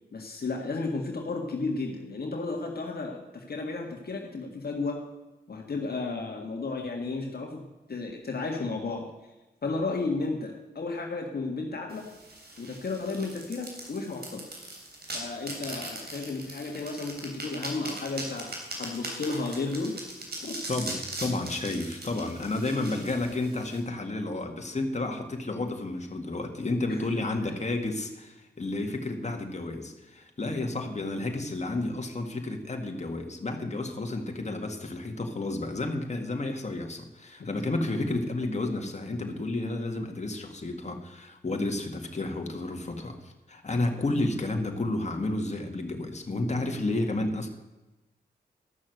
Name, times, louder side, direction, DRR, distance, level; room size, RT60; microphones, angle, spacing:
voice 1, 0.1-5.1 5.5-7.6 7.9-9.1 9.6-12.1 12.6-14.5 15.1-18.5 18.8-20.0 20.4-20.6 26.9-27.0 27.4-27.5, left 3 dB, 60° left, 1 dB, 1.7 m, -33 dB
sound 1, 11.9-23.8, right 2 dB, 65° right, 3.5 m, -40 dB
voice 2, 20.7-47.5, left 2 dB, 40° left, 3 dB, 2.0 m, -31 dB
13.0 x 6.4 x 7.9 m, 1.0 s
cardioid pair, 50°, 18 cm